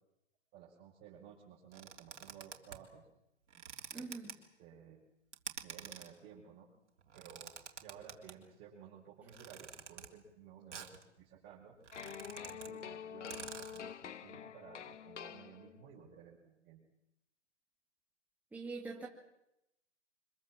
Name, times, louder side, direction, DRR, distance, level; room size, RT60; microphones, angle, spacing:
voice 1, 0.5-3.1 3.9-5.0 5.6-6.7 7.1-11.8 12.4-16.8, right 8 dB, 25° right, -5 dB, 5.5 m, -56 dB
sound 1, 1.7-2.9 3.5-4.3 5.3-6.1 7.0-8.4 9.3-10.1 10.7-11.0 11.4-11.5 11.7-12.7 13.0-13.1 13.3-13.8, right 7 dB, 75° right, 3.3 m, -48 dB
voice 2, 3.9-4.3 18.5-19.1, right 3 dB, 5° right, -2 dB, 2.3 m, -43 dB
sound 2, 11.9-16.0, left 8 dB, 75° left, 1.0 m, -47 dB
25.0 x 21.5 x 7.5 m, 0.87 s
hypercardioid pair, 135°, 36 cm